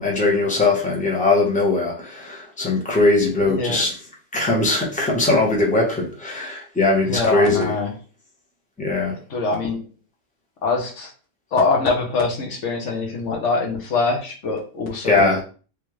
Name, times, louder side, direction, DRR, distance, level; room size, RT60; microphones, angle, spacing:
voice 1, 0.0-3.9 4.3-7.7 8.8-9.1 15.0-15.4, left 2 dB, 5° left, -3 dB, 0.9 m, -20 dB
voice 2, 3.4-3.8 7.0-7.9 9.3-9.9 10.6-11.1 11.5-15.4, left 4 dB, 70° left, 1 dB, 1.1 m, -23 dB
3.2 x 3.2 x 3.1 m, 0.38 s
omnidirectional pair, 1.3 m